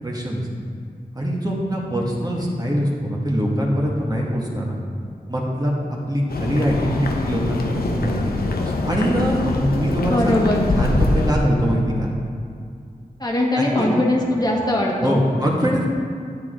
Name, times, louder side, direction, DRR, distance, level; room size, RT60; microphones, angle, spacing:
voice 1, 0.0-0.5 1.2-4.8 5.3-8.4 8.7-12.1 13.6-13.9 15.0-15.9, equal, 25° right, -4 dB, 2.0 m, -23 dB
sound 1, 6.3-11.3, left 2 dB, 85° left, 0.8 m, -24 dB
voice 2, 10.1-10.7 13.2-15.2, left 1 dB, 25° left, -3 dB, 1.7 m, -20 dB
9.3 x 7.8 x 3.9 m, 2.3 s
cardioid pair, 40°, 15 cm